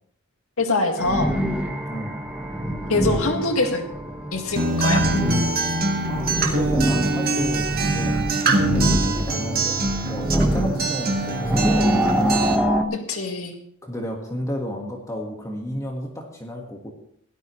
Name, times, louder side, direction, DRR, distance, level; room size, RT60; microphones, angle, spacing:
voice 1, 0.6-1.3 2.9-3.8 4.3-5.1 12.9-13.5, left 3 dB, 80° left, 3 dB, 2.0 m, -24 dB
sound 1, 1.0-12.8, equal, 5° right, 1.2 m, -25 dB
voice 2, 1.9-2.2 5.6-5.7 6.1-9.8 10.1-12.5 13.8-16.9, equal, 15° left, 0 dB, 1.6 m, -31 dB
Acoustic guitar, 4.6-12.5, right 2 dB, 45° right, 1.8 m, -24 dB
17.0 x 12.5 x 3.2 m, 0.69 s
head